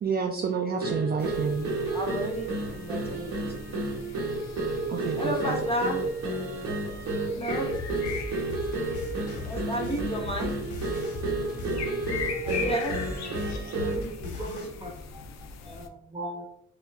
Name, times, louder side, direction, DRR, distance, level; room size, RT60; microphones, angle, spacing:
voice 1, 0.0-1.7 4.9-5.5, right 6 dB, 35° right, 4 dB, 0.4 m, -29 dB
sound 1, 0.8-14.1, right 2 dB, 65° right, 1.1 m, -31 dB
sound 2, 1.2-15.9, left 5 dB, 60° left, 0.5 m, -41 dB
voice 2, 1.9-3.8 5.1-6.0 7.3-7.8 9.4-10.7 12.6-13.0 13.7-14.0, equal, 20° left, -1 dB, 1.0 m, -32 dB
sound 3, 7.7-14.7, left 3 dB, 80° left, 0.9 m, -38 dB
voice 3, 11.3-12.1 12.3-12.8 13.4-16.4, equal, 15° right, 0 dB, 1.2 m, -41 dB
4.8 x 2.2 x 2.5 m, 0.71 s
cardioid pair, 90°, 30 cm